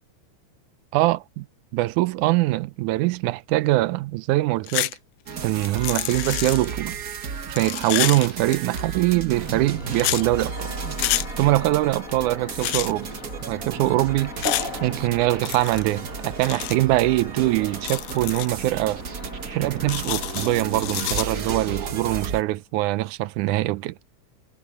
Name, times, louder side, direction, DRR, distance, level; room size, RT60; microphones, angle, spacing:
voice 1, 0.9-1.5 1.7-4.9 5.4-7.0 7.5-10.7 11.4-13.1 13.5-14.3 14.8-19.0 19.5-24.0, right 18 dB, 85° right, 2.1 m, -23 dB
sound 1, 4.7-5.0 5.3-6.7 7.5-8.8 9.9-10.2 11.0-11.3 12.6-12.9 14.4-14.7 15.4-15.8 16.4-16.8 17.8-18.5 19.9-21.2, left 18 dB, 90° left, 2.1 m, -28 dB
sound 2, 5.3-22.4, right 6 dB, 55° right, 1.0 m, -34 dB
sound 3, 9.3-21.4, left 3 dB, 30° left, 2.0 m, -39 dB
omnidirectional pair, 3.5 m